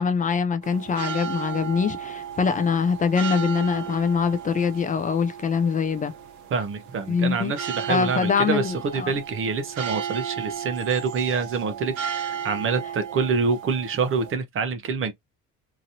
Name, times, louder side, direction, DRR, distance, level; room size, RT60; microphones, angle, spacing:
voice 1, 0.0-6.1 7.1-7.5 7.9-9.1, left 6 dB, 25° left, 0.4 m, -24 dB
sound 1, 0.6-14.3, right 8 dB, 75° right, 0.9 m, -35 dB
voice 2, 6.5-15.1, right 5 dB, 40° right, 0.8 m, -26 dB
3.0 x 2.6 x 2.7 m
cardioid pair, 150°, 31 cm